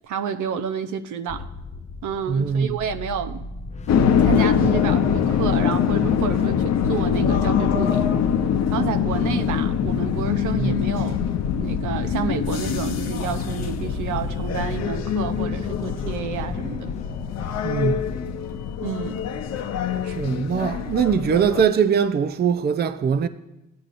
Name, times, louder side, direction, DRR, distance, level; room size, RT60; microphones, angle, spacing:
voice 1, 0.1-1.5 2.0-3.4 4.2-8.1 8.7-11.3 11.6-16.9 18.8-19.2, right 7 dB, 75° right, 0.7 m, -30 dB
sound 1, 1.3-18.3, left 4 dB, 25° left, 0.4 m, -36 dB
voice 2, 2.3-2.8 10.6-10.8 17.6-18.1 20.0-23.3, right 6 dB, 35° right, 0.5 m, -22 dB
subway passing, 3.9-21.6, left 8 dB, 60° left, 0.7 m, -23 dB
15.0 x 9.4 x 2.5 m
cardioid pair, 90°, 30 cm